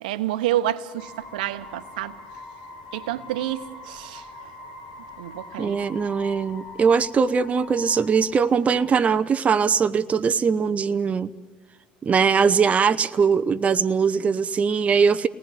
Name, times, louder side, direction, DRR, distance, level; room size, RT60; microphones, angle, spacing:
voice 1, 0.0-2.2 2.9-4.3 5.2-5.8, right 13 dB, 70° right, 13 dB, 1.1 m, -28 dB
sound 1, 1.0-8.9, left 2 dB, 65° left, 6.3 m, -43 dB
voice 2, 5.6-11.3 12.0-15.3, right 6 dB, 30° right, 11 dB, 0.8 m, -21 dB
29.0 x 19.5 x 9.5 m, 1.4 s
hypercardioid pair, 70°, 5 cm